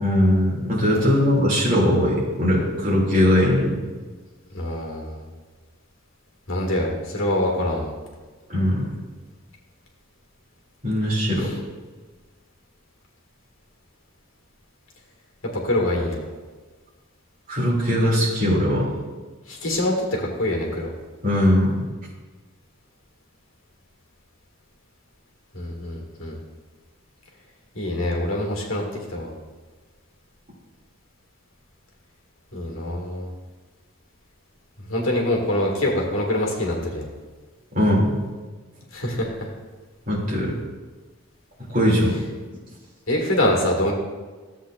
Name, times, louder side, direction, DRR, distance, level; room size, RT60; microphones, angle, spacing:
voice 1, 0.0-3.8 8.5-8.9 10.8-11.5 17.5-18.9 21.2-21.8 37.7-38.2 40.1-40.5 41.7-42.2, equal, 40° right, -5 dB, 2.5 m, -20 dB
voice 2, 4.5-5.2 6.5-7.9 11.4-11.5 15.5-16.2 19.5-20.9 25.5-26.4 27.8-28.8 29.1-29.3 32.5-33.3 34.9-37.1 38.9-39.5 43.1-43.9, left 1 dB, 75° left, 0 dB, 1.9 m, -24 dB
13.5 x 7.6 x 2.4 m, 1.4 s
head